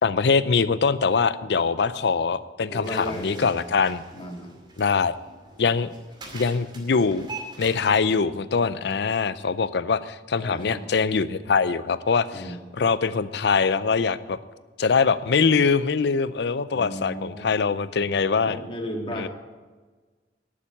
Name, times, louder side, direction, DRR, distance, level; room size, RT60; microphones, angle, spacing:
voice 1, 0.0-4.0 4.8-5.1 5.6-5.9 6.3-7.3 7.6-12.5 12.8-14.4 14.8-18.6 19.1-19.3, left 5 dB, 65° left, 15 dB, 0.5 m, -23 dB
voice 2, 2.7-3.5 4.1-4.6 10.3-10.8 12.3-12.6 16.7-17.6 18.4-19.3, equal, 30° left, 2 dB, 1.9 m, -34 dB
sound 1, 2.8-8.0, right 3 dB, 25° right, 2.3 m, -43 dB
11.5 x 7.4 x 8.6 m, 1.4 s
head